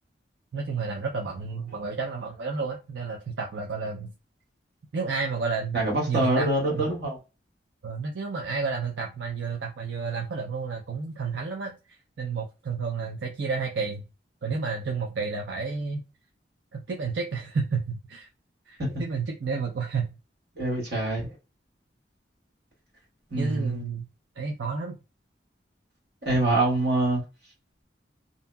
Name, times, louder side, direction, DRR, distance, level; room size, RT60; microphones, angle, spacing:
voice 1, 0.5-4.1 4.9-6.5 6.7-6.9 7.8-14.0 14.4-16.0 16.7-18.3 18.7-20.1 20.9-21.1 23.4-24.1 24.4-25.0, right 4 dB, 80° right, 0.5 m, -31 dB
voice 2, 5.7-7.2 18.8-19.0 20.5-21.3 23.3-23.8 26.2-27.2, right 2 dB, 60° right, 1.6 m, -25 dB
2.8 x 2.6 x 2.2 m
head